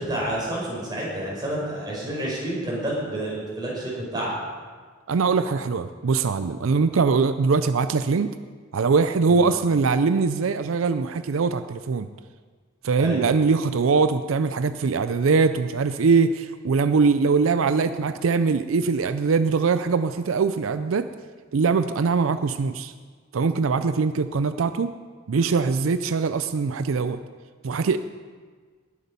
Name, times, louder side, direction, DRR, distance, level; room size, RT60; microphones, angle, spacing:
voice 1, 0.0-4.3 9.3-9.5 13.0-13.2, right 1 dB, 20° right, -5 dB, 5.2 m, -29 dB
voice 2, 5.1-8.3 8.7-12.1 12.8-21.1 21.5-22.9 23.3-24.9 25.3-27.2 27.6-28.0, right 4 dB, 85° right, 11 dB, 0.5 m, -22 dB
19.5 x 8.5 x 5.4 m, 1.5 s
head